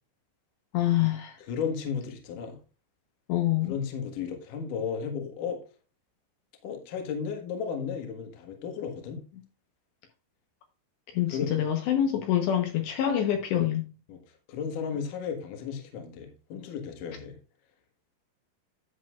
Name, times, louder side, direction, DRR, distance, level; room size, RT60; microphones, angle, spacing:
voice 1, 0.7-1.4 3.3-3.7 11.1-13.9, left 11 dB, 75° left, 3.1 m, -26 dB
voice 2, 1.5-2.6 3.6-5.6 6.6-9.2 11.3-11.5 14.1-14.2 14.5-17.4, left 6 dB, 55° left, 2.5 m, -34 dB
10.5 x 8.3 x 2.4 m
omnidirectional pair, 5.5 m